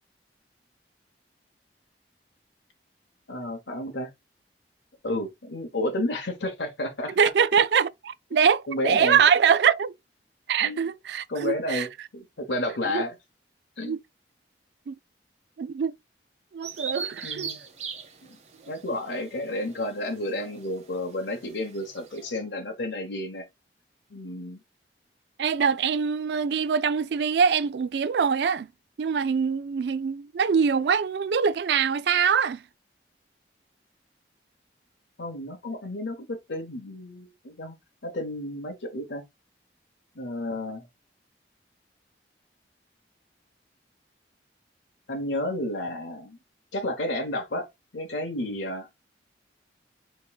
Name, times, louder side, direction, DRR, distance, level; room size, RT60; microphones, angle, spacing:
voice 1, 3.3-4.1 5.0-7.2 8.7-9.2 10.6-10.8 11.3-13.2 13.8-14.0 17.2-17.6 18.3-18.4 18.7-23.4 24.1-24.6 35.2-37.7 38.0-39.2 40.2-40.8 45.1-46.4 46.7-47.7 47.9-48.9, left 1 dB, 80° left, 1.0 m, -31 dB
voice 2, 7.2-9.9 10.5-11.9 12.9-13.0 13.8-14.0 14.9-15.0 15.6-15.9 16.5-17.5 25.4-28.7 29.0-32.6, right 6 dB, 70° right, 0.4 m, -23 dB
Bird vocalization bird call bird song, 16.6-22.3, right 5 dB, 40° right, 1.0 m, -40 dB
5.2 x 3.6 x 2.3 m
head